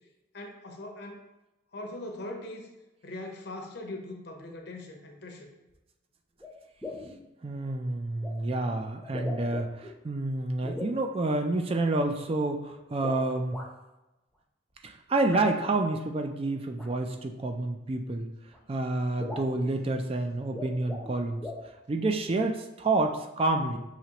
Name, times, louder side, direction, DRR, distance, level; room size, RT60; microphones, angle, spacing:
voice 1, 0.3-1.2 1.7-2.7 3.0-5.5, left 1 dB, 60° left, 2 dB, 0.7 m, -40 dB
sound 1, 5.7-5.8 6.4-6.5 6.8-7.2 8.2-8.3 9.0-9.9 10.6-11.0 12.9-13.7 15.3-15.5 16.7-16.9 18.1-18.2 18.5-18.6 18.9-19.0 19.2-19.6 20.4-21.1 21.4-21.7, left 2 dB, 5° left, 0.7 m, -39 dB
voice 2, 7.4-13.6 14.8-18.3 18.7-21.4 21.9-23.8, right 2 dB, 30° right, 5 dB, 0.3 m, -29 dB
5.8 x 2.9 x 2.9 m, 0.99 s
head